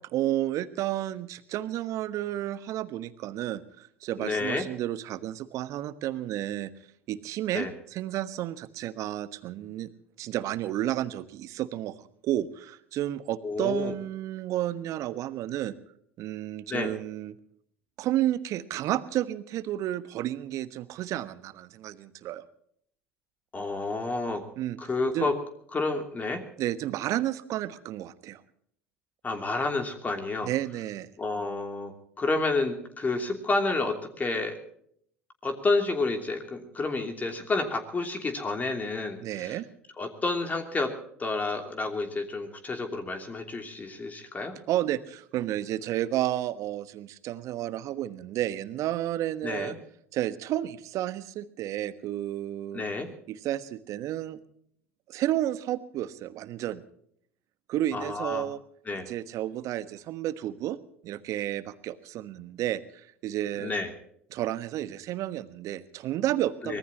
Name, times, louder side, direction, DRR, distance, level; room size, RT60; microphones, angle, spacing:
voice 1, 0.1-6.7 7.1-9.9 10.2-11.9 12.2-15.8 16.2-17.3 18.0-22.4 24.6-24.8 25.1-25.3 26.6-28.4 30.4-31.1 39.2-39.7 44.7-49.7 50.1-52.9 53.3-54.4 55.1-56.8 57.7-58.6 59.1-60.8 61.0-63.7 64.3-66.8, right 13 dB, 50° right, 13 dB, 1.3 m, -31 dB
voice 2, 4.2-4.6 7.5-7.7 13.4-13.9 16.7-16.9 23.5-24.4 24.8-25.3 25.7-26.4 29.2-30.5 31.2-34.6 35.4-39.6 40.0-40.9 41.2-44.5 49.4-49.7 52.7-53.1 57.9-58.4 58.9-59.1 63.6-63.9 66.6-66.8, left 3 dB, 25° left, 5 dB, 3.0 m, -30 dB
24.5 x 19.5 x 3.0 m, 0.66 s
figure-of-eight pair, 70°, 7 cm